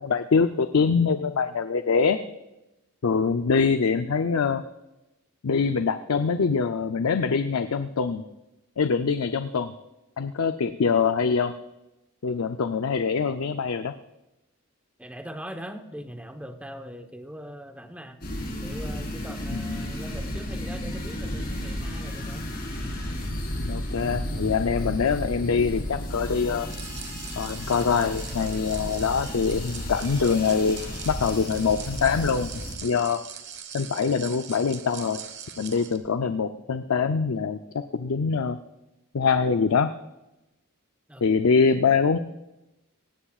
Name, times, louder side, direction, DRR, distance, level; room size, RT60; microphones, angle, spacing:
voice 1, 0.0-2.2 3.0-4.6 5.4-8.2 8.8-9.7 10.2-11.5 12.2-13.9 19.5-19.8 23.6-26.7 27.4-30.8 31.1-32.5 32.8-33.2 33.7-35.2 35.6-38.6 39.1-39.9 41.2-42.2, left 5 dB, 80° left, 8 dB, 0.5 m, -24 dB
voice 2, 15.0-18.2 18.6-22.5 41.1-41.3, equal, 5° right, 6 dB, 1.0 m, -41 dB
sound 1, 18.2-32.7, equal, 45° left, 4.2 m, -33 dB
sound 2, 26.7-36.0, right 8 dB, 55° right, 1.3 m, -42 dB
18.0 x 16.0 x 2.4 m, 0.96 s
head